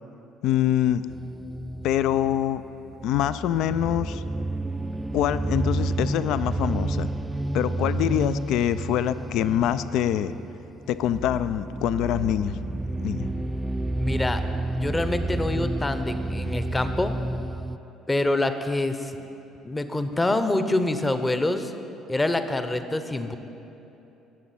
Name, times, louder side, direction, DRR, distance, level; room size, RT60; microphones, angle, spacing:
voice 1, 0.4-1.0 1.8-2.6 3.0-4.2 5.1-7.1 7.5-10.3 10.9-12.6 13.0-13.3, left 11 dB, 60° left, 14 dB, 0.3 m, -24 dB
sound 1, 1.1-17.8, right 2 dB, 15° right, 0.4 m, -30 dB
voice 2, 14.0-14.4 14.7-17.2 18.1-19.3 19.6-21.7 22.1-23.4, left 2 dB, 20° left, 9 dB, 0.8 m, -26 dB
19.0 x 7.4 x 4.2 m, 3.0 s
figure-of-eight pair, 55°, 0 cm